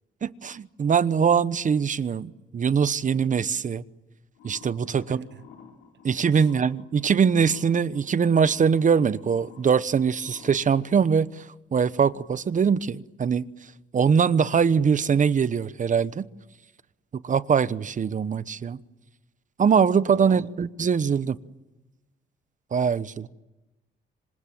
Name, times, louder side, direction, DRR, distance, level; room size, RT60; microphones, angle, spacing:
voice 1, 0.2-3.8 4.4-5.3 6.0-11.4 11.7-13.4 13.9-16.3 17.2-18.8 19.6-21.4 22.7-23.3, right 6 dB, 40° right, 1.0 m, -22 dB
sound 1, 4.4-11.0, left 6 dB, 90° left, 4.5 m, -51 dB
voice 2, 4.9-5.4 6.3-6.5 20.1-20.5, right 9 dB, 65° right, 1.1 m, -42 dB
26.5 x 26.0 x 7.7 m
cardioid pair, 90°, 20 cm